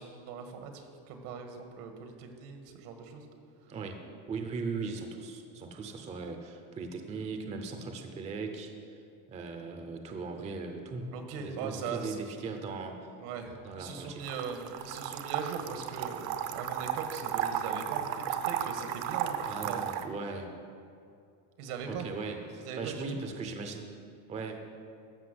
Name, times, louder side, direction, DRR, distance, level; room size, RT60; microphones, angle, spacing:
voice 1, 0.0-3.2 11.1-12.2 13.2-19.8 21.6-22.1 22.6-23.2, right 5 dB, 80° right, 5 dB, 1.9 m, -40 dB
voice 2, 4.3-8.7 9.3-13.0 13.6-14.2 19.5-20.5 21.8-23.8 24.3-24.8, right 4 dB, 15° right, 5 dB, 0.5 m, -38 dB
sound 1, 14.2-20.1, right 9 dB, 50° right, 0.7 m, -34 dB
13.5 x 5.8 x 7.8 m, 2.5 s
cardioid pair, 165°, 45 cm